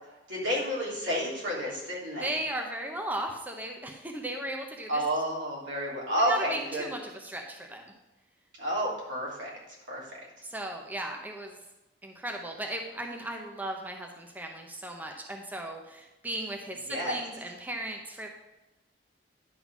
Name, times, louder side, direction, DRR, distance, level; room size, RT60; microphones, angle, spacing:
voice 1, 0.3-2.3 4.9-6.9 8.6-9.5 9.9-10.0 16.9-17.2, equal, 90° right, -5 dB, 3.1 m, -30 dB
voice 2, 2.2-5.0 6.3-7.8 10.4-11.6 12.0-18.3, right 1 dB, 10° right, 2 dB, 0.7 m, -36 dB
10.5 x 3.9 x 6.0 m, 1.0 s
head